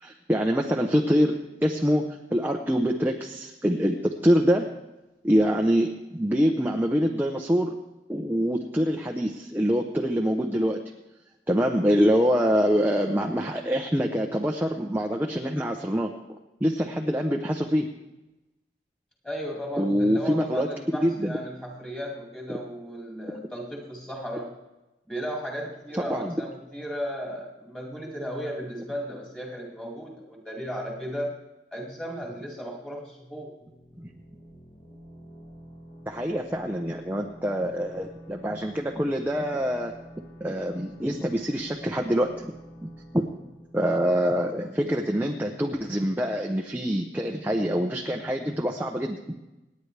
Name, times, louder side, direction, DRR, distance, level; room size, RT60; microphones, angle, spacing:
voice 1, 0.0-2.0 2.3-4.7 5.2-7.7 8.1-10.8 11.5-16.1 16.6-17.9 19.8-21.4 26.1-26.3 34.0-34.1 36.1-39.9 40.4-42.5 42.8-42.9 43.1-43.3 43.7-49.3, equal, 10° right, 0 dB, 0.7 m, -25 dB
voice 2, 19.2-24.5 25.1-31.3 31.7-33.5, equal, 5° left, -1 dB, 2.4 m, -35 dB
sound 1, 33.6-45.1, equal, 30° left, 1.8 m, -48 dB
27.5 x 9.6 x 3.4 m, 1.0 s
head